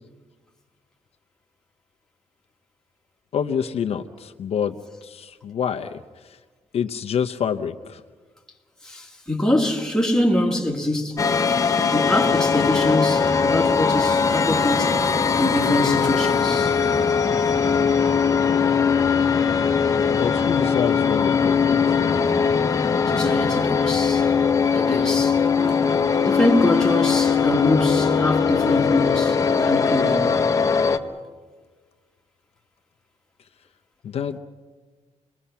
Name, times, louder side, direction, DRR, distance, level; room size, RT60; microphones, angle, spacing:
voice 1, 3.3-4.7 5.0-6.4 6.7-8.0 20.1-22.0 34.0-34.4, left 7 dB, 55° left, 0.8 m, -27 dB
voice 2, 8.8-11.3 11.9-15.0 15.4-16.8 23.1-24.3 24.7-25.4 26.2-30.4, left 1 dB, 5° left, 2.1 m, -24 dB
sound 1, 11.2-31.0, left 6 dB, 30° left, 1.1 m, -20 dB
28.5 x 21.0 x 5.7 m
wide cardioid pair, 170°, 12 cm